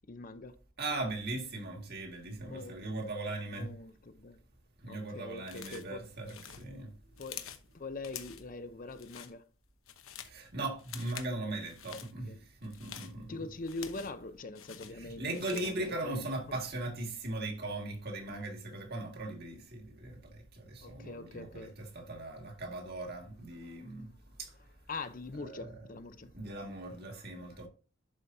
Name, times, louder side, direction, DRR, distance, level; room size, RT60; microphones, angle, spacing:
voice 1, 0.1-0.6 2.4-4.4 4.9-6.0 7.2-7.5 7.7-9.5 11.9-12.4 13.2-16.5 20.8-21.8 23.6-23.8 24.9-26.3 27.0-27.7, left 3 dB, 40° left, 0.6 m, -44 dB
voice 2, 0.8-3.7 4.8-6.9 10.2-13.4 14.9-21.7 22.0-24.1 24.4-24.5 25.4-25.7 26.3-27.7, right 2 dB, 50° right, 2.0 m, -39 dB
sound 1, 5.4-5.9 6.2-7.7 8.0-8.5 8.9-9.3 9.7-10.4 10.8-11.3 11.6-12.1 12.6-14.2 14.5-15.8, left 9 dB, 90° left, 1.0 m, -47 dB
11.5 x 5.0 x 2.7 m
head